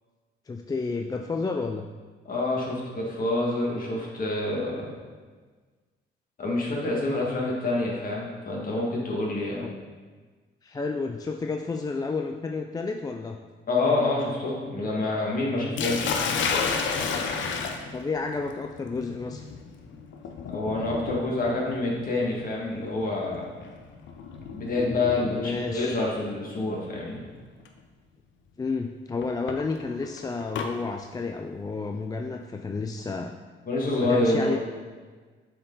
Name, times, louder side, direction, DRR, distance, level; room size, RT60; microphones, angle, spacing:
voice 1, 0.5-1.9 9.6-9.7 10.6-13.4 17.9-19.4 25.4-26.0 28.6-33.3 34.0-34.6, left 4 dB, 20° left, 3 dB, 0.3 m, -31 dB
voice 2, 2.3-4.9 6.4-9.7 13.7-16.2 20.5-23.5 24.5-27.2 33.7-34.6, left 2 dB, 45° left, -3 dB, 1.9 m, -27 dB
Sink (filling or washing), 15.8-25.7 26.8-27.1 27.6-27.7 29.2-30.7, left 5 dB, 70° left, 0.7 m, -32 dB
7.6 x 4.5 x 3.9 m, 1.4 s
cardioid pair, 90°, 20 cm